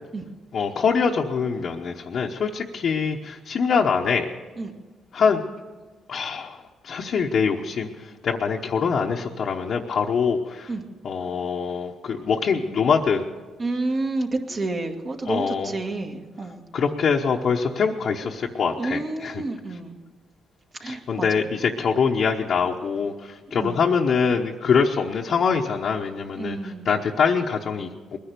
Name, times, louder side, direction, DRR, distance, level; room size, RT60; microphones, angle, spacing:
voice 1, 0.5-4.3 5.1-5.4 6.1-6.6 6.8-10.7 11.0-13.2 15.3-15.7 16.7-19.4 20.8-28.2, left 6 dB, 55° left, -1 dB, 1.0 m, -24 dB
voice 2, 13.6-16.6 18.8-20.0 20.8-21.3 23.5-23.8 26.4-26.9, right 2 dB, 40° right, 3 dB, 2.0 m, -29 dB
21.0 x 10.5 x 6.8 m, 1.3 s
cardioid pair, 90°, 0 cm